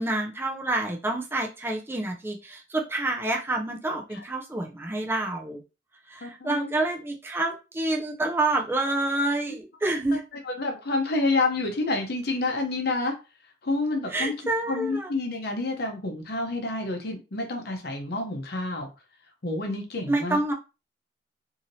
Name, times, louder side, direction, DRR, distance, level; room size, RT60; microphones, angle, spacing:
voice 1, 0.0-5.6 6.1-10.2 14.1-15.1 20.1-20.5, right 2 dB, 15° right, 1 dB, 0.4 m, -28 dB
voice 2, 6.2-6.7 10.4-13.1 13.6-14.3 14.7-18.9 19.4-20.4, left 2 dB, 60° left, 3 dB, 0.7 m, -28 dB
2.8 x 2.8 x 2.7 m, 0.29 s
head